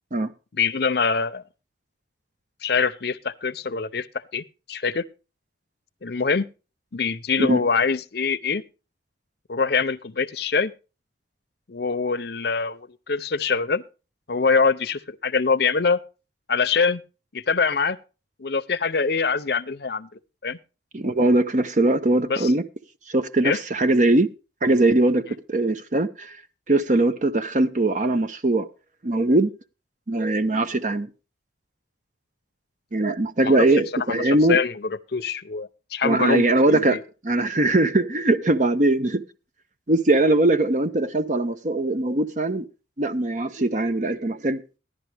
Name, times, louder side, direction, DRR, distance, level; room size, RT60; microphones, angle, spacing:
voice 1, 0.6-1.4 2.6-4.1 4.3-5.0 6.0-6.5 6.9-8.6 9.5-10.7 11.7-13.8 14.3-16.0 16.5-17.0 17.3-18.0 18.4-20.1 20.4-20.6 22.3-22.5 23.4-23.6 33.4-33.6 34.1-37.0, left 5 dB, 55° left, 0.6 m, -24 dB
voice 2, 20.9-22.6 23.1-24.3 24.6-26.4 26.7-28.7 29.0-29.5 30.1-31.1 32.9-34.6 36.0-39.2 39.9-42.6 43.0-44.6, right 2 dB, 40° right, 0.7 m, -21 dB
15.0 x 11.0 x 3.4 m
head